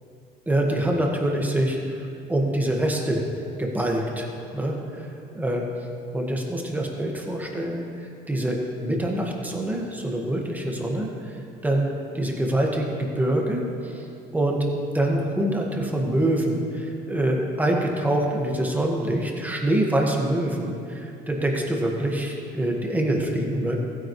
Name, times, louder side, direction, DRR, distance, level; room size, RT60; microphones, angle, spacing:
voice 1, 0.5-3.2 3.6-4.3 4.5-5.6 6.1-11.9 12.1-14.7 14.9-23.8, right 1 dB, 10° right, 0 dB, 1.6 m, -25 dB
15.0 x 9.4 x 3.2 m, 2.4 s
cardioid pair, 110°, 17 cm